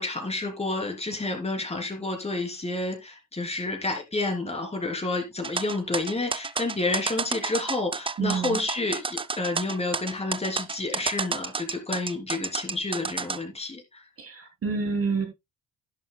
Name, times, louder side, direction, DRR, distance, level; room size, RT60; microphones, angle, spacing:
voice 1, 0.0-14.0, left 2 dB, 20° left, 3 dB, 3.2 m, -30 dB
sound 1, 5.4-13.4, right 4 dB, 20° right, 0.5 m, -30 dB
voice 2, 8.2-8.6 14.2-15.3, right 5 dB, 50° right, 3 dB, 3.3 m, -28 dB
11.0 x 11.0 x 2.2 m, 0.21 s
cardioid pair, 90°, 30 cm